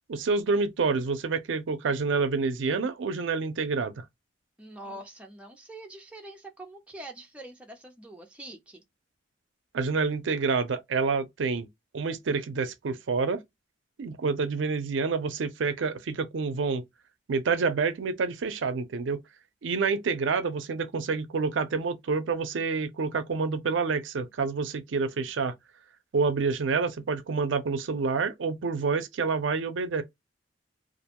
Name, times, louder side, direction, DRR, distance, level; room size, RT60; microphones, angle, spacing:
voice 1, 0.1-4.0 9.7-11.7 11.9-13.4 14.0-16.8 17.3-19.2 19.6-25.5 26.1-30.0, right 4 dB, 80° right, 0.5 m, -28 dB
voice 2, 4.6-8.8, right 1 dB, 5° right, 0.5 m, -44 dB
2.5 x 2.1 x 2.8 m
head